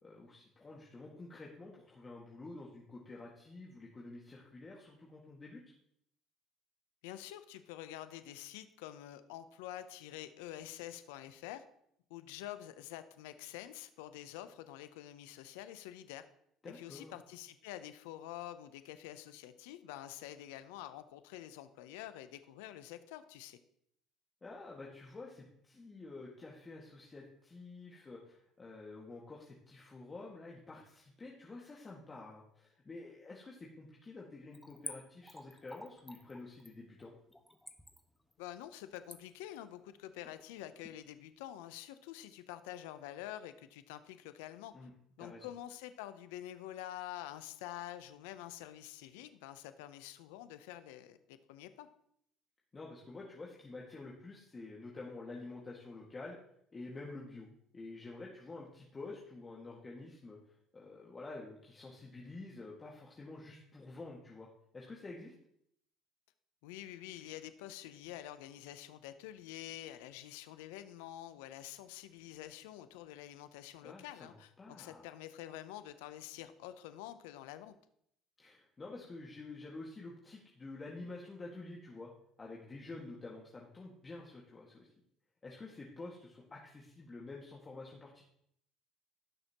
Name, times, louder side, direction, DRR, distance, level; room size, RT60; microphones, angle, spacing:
voice 1, 0.0-5.6 16.6-17.2 24.4-37.1 44.7-44.9 45.2-45.5 52.7-56.4 56.7-57.5 57.7-64.5 64.7-65.3 73.8-75.1 78.4-82.1 82.4-84.9 85.4-88.2, left 3 dB, 30° left, -3 dB, 2.0 m, -49 dB
voice 2, 7.0-11.6 12.1-16.2 16.6-23.6 38.4-44.7 45.2-51.9 66.6-77.7, left 13 dB, 80° left, 11 dB, 0.7 m, -47 dB
Splash splatter / Trickle dribble, 34.5-41.0 41.3-41.4, left 1 dB, 5° left, 1.3 m, -50 dB
17.0 x 6.4 x 3.0 m, 0.71 s
hypercardioid pair, 65°, 0 cm